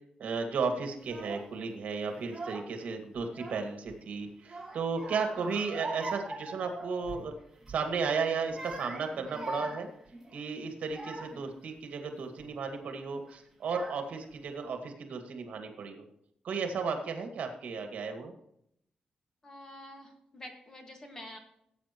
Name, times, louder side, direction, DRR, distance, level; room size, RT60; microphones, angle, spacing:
voice 1, 0.2-7.3 7.7-9.9 10.3-16.0 16.4-18.3, right 5 dB, 65° right, 5 dB, 2.0 m, -34 dB
Child speech kid speaking / Crying sobbing, 1.0-1.5 2.2-2.8 3.1-4.0 4.4-7.3 7.6-7.9 8.4-11.5 12.1-12.5 13.3-13.4 13.6-14.3, right 2 dB, 10° right, 2.2 m, -42 dB
voice 2, 19.4-21.4, left 1 dB, 25° left, 3 dB, 1.9 m, -47 dB
17.0 x 8.7 x 3.1 m, 0.74 s
wide cardioid pair, 175°, 3 cm